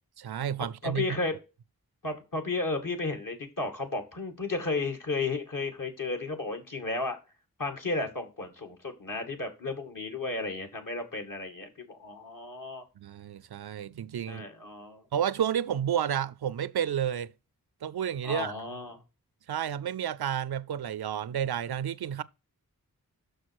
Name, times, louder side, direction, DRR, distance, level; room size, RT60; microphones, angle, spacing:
voice 1, 0.2-1.1 13.0-14.5 15.1-17.3 17.8-18.5 19.5-22.2, right 9 dB, 85° right, 0.5 m, -31 dB
voice 2, 0.8-1.3 2.0-7.2 7.6-12.8 14.3-15.0 18.2-19.0, left 3 dB, 60° left, 2.2 m, -33 dB
6.4 x 6.3 x 4.7 m
cardioid pair, 45°, 37 cm